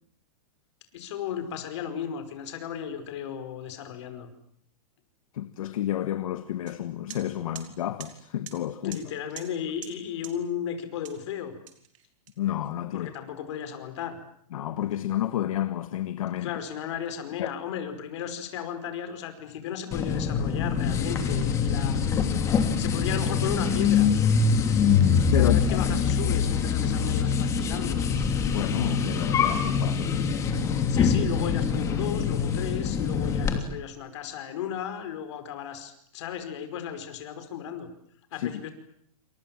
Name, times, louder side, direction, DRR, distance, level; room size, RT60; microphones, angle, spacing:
voice 1, 0.9-4.3 8.8-11.5 12.9-14.2 16.4-22.0 22.8-24.1 25.4-28.0 30.9-37.9 38.3-38.7, left 8 dB, 50° left, 5.1 m, -35 dB
voice 2, 5.3-9.0 12.4-13.1 14.5-16.6 17.4-17.5 25.3-25.8 28.4-30.1 38.3-38.5, left 12 dB, 65° left, 1.7 m, -30 dB
sound 1, 6.7-6.8 7.1-7.2 7.5-7.7 8.0-8.1 8.5-8.6 8.9-9.0 9.4-9.5 9.8-9.9 10.2-10.3 11.0-11.2 11.7-12.7, right 12 dB, 60° right, 5.2 m, -43 dB
sound 2, 19.9-33.6, left 6 dB, 15° left, 2.8 m, -24 dB
28.5 x 28.0 x 7.5 m
supercardioid pair, 170°, 19 cm